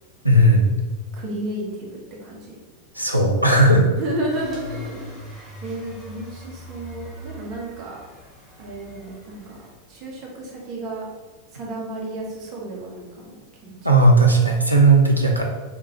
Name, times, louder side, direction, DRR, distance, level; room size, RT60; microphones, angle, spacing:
voice 1, 0.2-0.8 2.9-3.9 13.8-15.4, right 2 dB, 85° right, 1 dB, 0.4 m, -15 dB
voice 2, 1.1-2.6 4.0-8.0 8.6-9.6 9.9-11.0 11.5-13.8 14.0-14.2, right 1 dB, 35° right, -3 dB, 1.1 m, -32 dB
sound 1, 4.3-9.7, left 2 dB, ahead, 1.2 m, -41 dB
3.5 x 3.5 x 3.0 m, 1.3 s
figure-of-eight pair, 90°, 0 cm